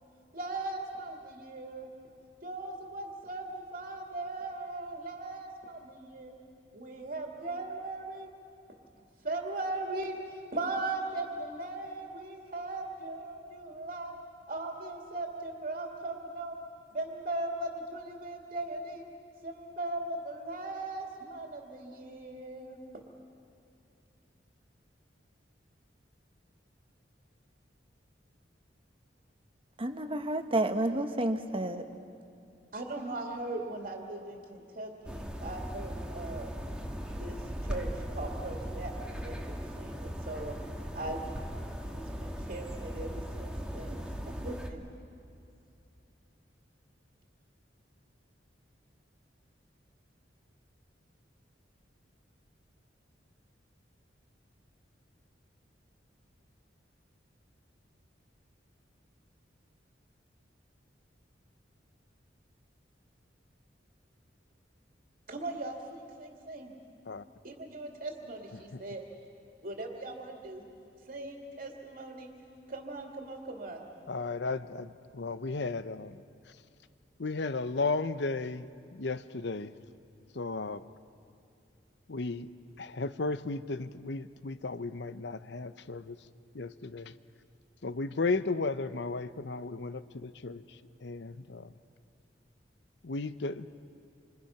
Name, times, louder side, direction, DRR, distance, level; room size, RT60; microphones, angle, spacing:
voice 1, 0.3-1.9 2.4-6.4 6.7-8.3 9.2-10.2 10.5-14.1 14.5-16.6 16.9-19.0 19.4-22.8 32.7-36.6 37.1-40.6 40.9-41.2 41.6-41.7 41.9-44.9 65.3-66.7 67.4-69.0 69.6-70.6 71.1-72.3 72.7-73.8, right 2 dB, 50° right, 1 dB, 2.5 m, -39 dB
voice 2, 29.8-31.8, right 1 dB, 30° right, 7 dB, 1.3 m, -30 dB
sounds from my window, 35.0-44.7, equal, 5° right, 1.6 m, -38 dB
voice 3, 68.5-68.8 74.1-76.6 77.2-79.7 80.3-80.9 82.1-82.5 82.8-86.3 86.5-87.1 87.8-91.7 93.0-93.7, left 3 dB, 65° left, 13 dB, 0.8 m, -35 dB
28.0 x 26.0 x 5.9 m, 2.6 s
head